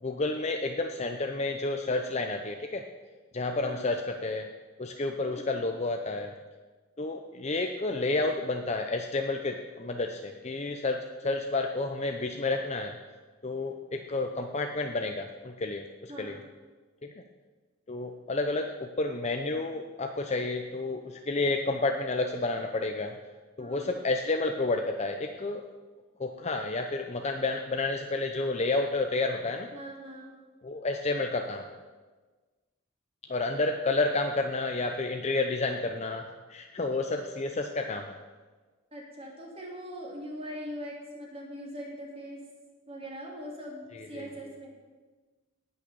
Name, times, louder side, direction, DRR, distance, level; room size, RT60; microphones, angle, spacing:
voice 1, 0.0-2.9 3.3-4.5 4.8-6.3 7.0-13.0 13.4-16.4 17.0-17.1 17.9-23.1 23.6-25.6 26.2-29.7 30.6-31.7 33.3-38.2 43.9-44.3, left 2 dB, 35° left, 4 dB, 0.7 m, -30 dB
voice 2, 5.3-5.6 11.2-11.4 16.1-16.4 23.6-23.9 29.7-30.4 38.9-42.4 42.9-44.7, equal, 30° right, -1 dB, 2.8 m, -41 dB
18.0 x 6.5 x 7.0 m, 1.3 s
head